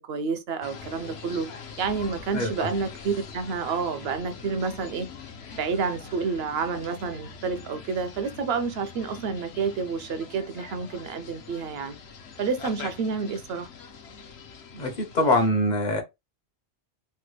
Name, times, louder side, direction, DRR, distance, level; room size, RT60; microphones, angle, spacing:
voice 1, 0.0-1.5 1.8-5.1 5.5-12.0 12.4-13.7, right 5 dB, 70° right, 0.7 m, -29 dB
sound 1, 0.6-15.5, left 5 dB, 70° left, 1.0 m, -43 dB
voice 2, 2.3-2.7 14.7-16.0, left 1 dB, 45° left, 0.8 m, -24 dB
3.3 x 2.2 x 3.1 m
omnidirectional pair, 1.1 m